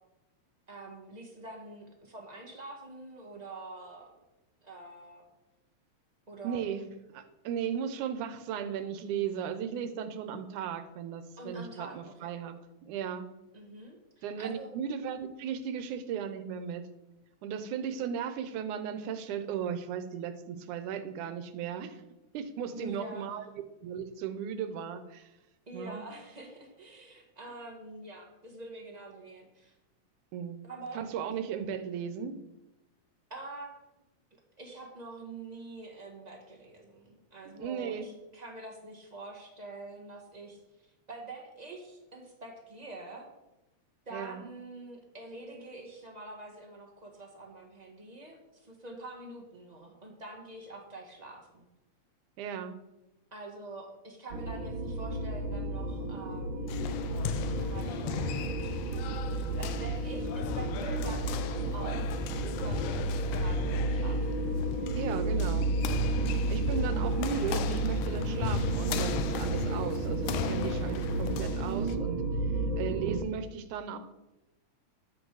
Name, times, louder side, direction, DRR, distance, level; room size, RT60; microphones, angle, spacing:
voice 1, 0.7-4.1 4.6-5.2 6.3-6.7 11.4-12.3 13.5-14.7 22.7-23.4 25.7-29.7 30.6-31.1 33.3-33.9 34.6-43.3 44.0-51.7 53.3-56.7 57.5-62.1 62.6-64.8, right 2 dB, 25° right, 1 dB, 0.9 m, -46 dB
voice 2, 6.4-6.8 7.1-12.5 12.8-13.3 14.2-16.8 17.4-22.0 22.3-23.4 23.8-25.3 25.7-26.0 30.3-30.6 31.0-32.3 37.5-38.1 44.1-44.5 52.4-52.8 65.0-65.9 66.5-72.2 72.8-74.0, right 8 dB, 90° right, 10 dB, 2.3 m, -36 dB
sound 1, 54.3-73.2, right 2 dB, 65° right, 1.2 m, -32 dB
sound 2, 56.7-72.0, left 8 dB, 85° left, 2.1 m, -38 dB
11.0 x 8.0 x 4.8 m, 0.98 s
omnidirectional pair, 3.4 m